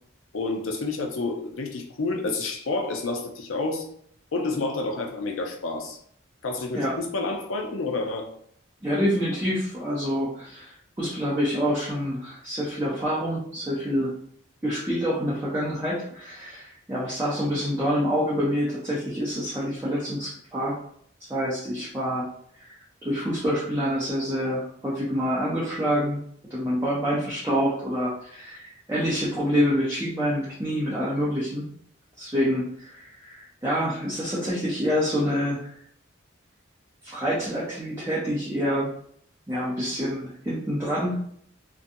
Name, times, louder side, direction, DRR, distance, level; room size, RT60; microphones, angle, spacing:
voice 1, 0.3-3.9 4.3-6.0 6.4-8.3, left 3 dB, 85° left, 3 dB, 0.5 m, -29 dB
voice 2, 8.8-14.1 14.6-20.8 21.3-22.2 22.6-26.2 26.5-31.6 32.2-35.7 37.0-38.9 39.5-41.2, equal, 15° right, -9 dB, 0.5 m, -27 dB
2.5 x 2.2 x 2.6 m, 0.63 s
head